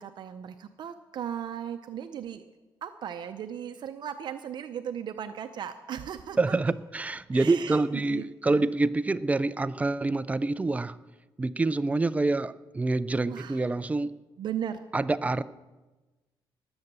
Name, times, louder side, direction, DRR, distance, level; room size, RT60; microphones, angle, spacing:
voice 1, 0.0-2.4 2.8-6.5 7.3-8.7 13.3-13.6 14.4-14.8, right 9 dB, 60° right, 8 dB, 0.7 m, -37 dB
voice 2, 6.4-11.0 11.4-14.1 14.9-15.4, right 3 dB, 15° right, 15 dB, 0.4 m, -26 dB
19.5 x 8.0 x 6.8 m, 1.2 s
cardioid pair, 125°, 9 cm